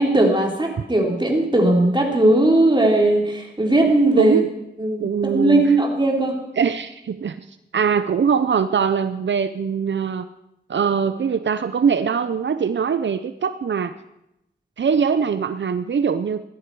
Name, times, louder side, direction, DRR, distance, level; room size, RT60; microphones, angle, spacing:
voice 1, 0.0-4.4 4.8-6.4, right 1 dB, 25° right, 0 dB, 3.5 m, -18 dB
voice 2, 5.0-5.6 6.6-7.4 7.7-10.3 10.7-13.9 14.8-16.4, right 6 dB, 85° right, 12 dB, 0.5 m, -22 dB
16.5 x 13.0 x 4.7 m, 0.86 s
wide cardioid pair, 55°, 19 cm